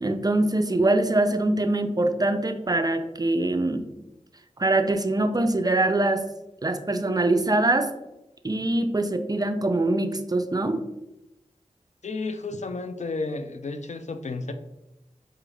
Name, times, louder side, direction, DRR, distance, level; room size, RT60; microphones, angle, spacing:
voice 1, 0.0-3.8 4.6-6.2 6.6-7.9 8.4-10.8, right 2 dB, 30° right, 8 dB, 0.4 m, -23 dB
voice 2, 12.0-14.5, left 3 dB, 60° left, 8 dB, 0.4 m, -32 dB
5.0 x 2.3 x 3.2 m, 0.93 s
wide cardioid pair, 50°, 14 cm